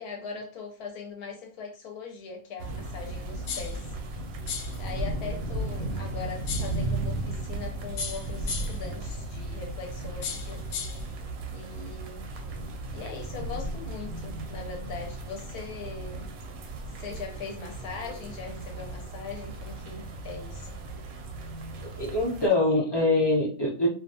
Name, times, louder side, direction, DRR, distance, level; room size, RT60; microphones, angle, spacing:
voice 1, 0.0-3.9 4.8-10.6 11.5-12.3 12.9-16.3 17.0-20.7, left 5 dB, 70° left, 1.1 m, -40 dB
sound 1, 2.6-22.5, right 2 dB, 70° right, 0.9 m, -36 dB
sound 2, 3.5-3.8 4.5-4.8 6.5-6.8 8.0-8.9 10.2-11.1, left 5 dB, 85° left, 1.2 m, -35 dB
voice 2, 21.8-23.9, left 2 dB, 40° left, 0.3 m, -24 dB
2.7 x 2.3 x 2.6 m
omnidirectional pair, 1.8 m